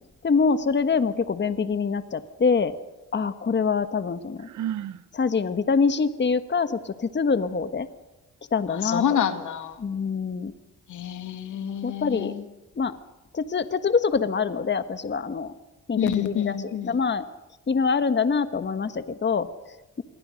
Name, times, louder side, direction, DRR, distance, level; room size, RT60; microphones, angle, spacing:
voice 1, 0.2-2.7 3.1-4.5 5.1-7.9 8.5-9.0 9.8-10.5 11.8-12.3 12.8-13.0 13.3-15.5 15.9-16.6 16.8-17.2 17.7-20.0, left 5 dB, 40° left, 11 dB, 1.4 m, -25 dB
Sigh, 4.4-5.0, right 10 dB, 90° right, 1.0 m, -32 dB
voice 2, 8.7-9.8 10.9-12.4 16.0-17.0, left 9 dB, 85° left, 9 dB, 2.2 m, -27 dB
27.5 x 22.5 x 6.5 m, 1.1 s
cardioid pair, 75°, 29 cm